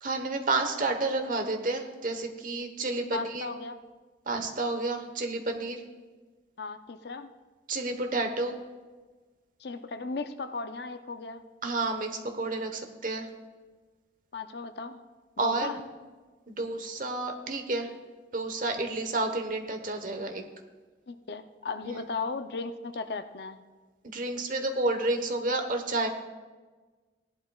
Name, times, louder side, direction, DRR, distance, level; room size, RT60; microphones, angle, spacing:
voice 1, 0.0-3.5 4.3-5.8 7.7-8.6 11.6-13.3 15.4-15.8 16.5-17.9 18.3-20.4 21.9-22.0 24.0-26.1, right 2 dB, 45° right, 5 dB, 1.1 m, -30 dB
voice 2, 3.1-3.8 6.6-7.3 9.6-11.4 14.3-15.0 15.4-15.8 21.1-23.7, left 4 dB, 60° left, 9 dB, 0.6 m, -36 dB
17.5 x 11.5 x 2.4 m, 1.3 s
head